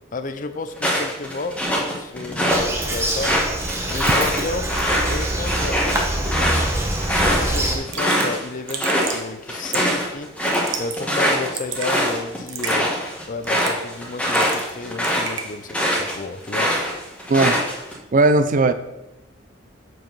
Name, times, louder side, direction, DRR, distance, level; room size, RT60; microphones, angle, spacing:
voice 1, 0.1-3.3 3.9-4.7 5.1-6.7 7.2-10.3 10.8-12.9 13.3-16.7, left 3 dB, 40° left, 10 dB, 0.6 m, -32 dB
sound 1, 0.8-2.6 3.0-8.4 8.7-9.2 9.5-16.1 16.5-17.9, equal, 5° left, 1.5 m, -22 dB
Bird vocalization bird call bird song, 2.5-7.8, right 1 dB, 15° right, 1.0 m, -25 dB
Raindrop / Drip, 7.2-7.3 7.6-7.7 7.9-8.3 8.7-9.2 9.7-10.0 10.5-11.0 11.3-11.9 12.5-12.8 13.4-13.9 14.2-14.7 15.0-15.5, right 7 dB, 70° right, 1.0 m, -31 dB
voice 2, 17.3-17.6 18.1-18.7, right 3 dB, 45° right, 11 dB, 0.5 m, -17 dB
7.8 x 4.6 x 5.5 m, 0.97 s
head